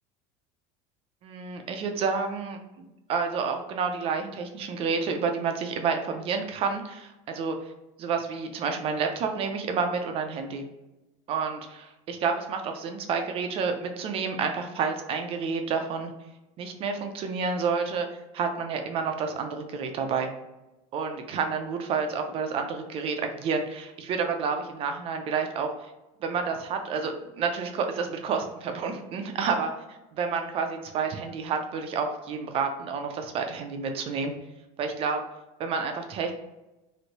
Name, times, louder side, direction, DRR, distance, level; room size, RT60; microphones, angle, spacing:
voice 1, 1.2-7.7 8.0-10.6 11.3-16.1 16.6-18.1 18.3-20.3 20.9-25.7 26.2-29.7 30.1-34.3 34.8-35.2 35.6-36.3, right 5 dB, 35° right, 5 dB, 0.4 m, -29 dB
3.0 x 2.6 x 2.8 m, 1.0 s
cardioid pair, 150°, 16 cm